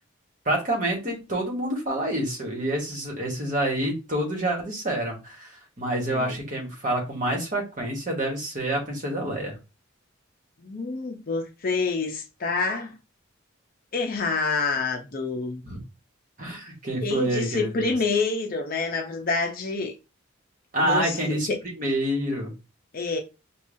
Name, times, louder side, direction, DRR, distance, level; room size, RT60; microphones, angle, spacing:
voice 1, 0.4-9.6 15.6-15.8 16.4-17.9 20.7-21.5 21.8-22.5, right 1 dB, 40° right, 1.3 m, -27 dB
voice 2, 10.6-12.9 13.9-15.6 17.0-19.9 20.8-21.6 22.9-23.2, left 4 dB, 45° left, 0.5 m, -27 dB
5.2 x 2.3 x 2.5 m
head